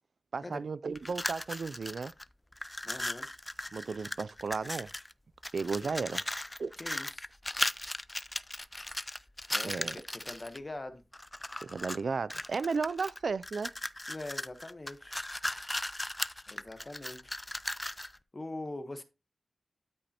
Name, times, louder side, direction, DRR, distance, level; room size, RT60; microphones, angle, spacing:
voice 1, 0.3-2.1 3.7-4.9 5.5-6.2 6.6-6.7 9.6-10.0 11.6-13.7, right 4 dB, 75° right, 0.3 m, -34 dB
sound 1, 1.0-2.2 2.5-5.1 5.4-10.6 11.1-12.0 12.3-18.2, left 1 dB, 15° left, 0.4 m, -37 dB
voice 2, 2.8-3.3 5.8-5.9 6.8-7.3 9.5-11.0 14.1-15.1 16.5-17.3 17.9-18.0 18.3-19.0, left 2 dB, 35° left, 1.0 m, -43 dB
12.5 x 5.3 x 2.9 m
wide cardioid pair, 75°, 0 cm